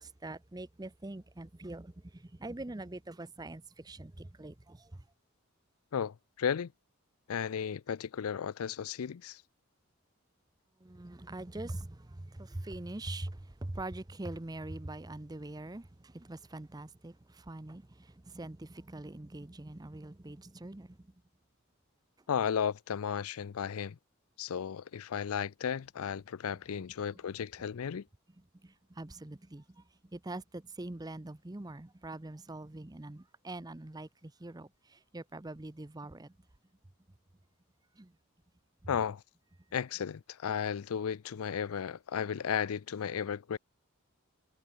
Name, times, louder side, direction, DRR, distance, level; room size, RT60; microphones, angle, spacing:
voice 1, 0.0-5.1 10.8-21.2 22.2-22.3 28.4-36.4 37.9-38.2 38.8-38.9, right 2 dB, 15° right, 0.6 m, -44 dB
voice 2, 5.9-6.7 7.3-9.4 22.3-24.0 24.4-28.0 38.9-39.2 39.7-43.6, left 7 dB, 80° left, 0.4 m, -34 dB
head